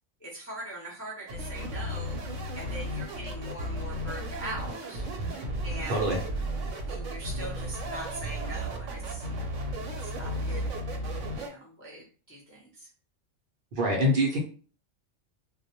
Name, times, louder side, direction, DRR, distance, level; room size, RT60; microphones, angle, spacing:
voice 1, 0.2-2.2 2.5-5.0 5.6-6.0 6.9-9.3 10.0-10.6 11.4-12.9, right 1 dB, 20° left, -4 dB, 0.3 m, -41 dB
sound 1, 1.3-11.5, right 1 dB, 80° right, 0.9 m, -34 dB
voice 2, 5.9-6.2 13.7-14.4, equal, 55° right, -1 dB, 0.7 m, -25 dB
2.2 x 2.0 x 2.8 m, 0.38 s
omnidirectional pair, 1.3 m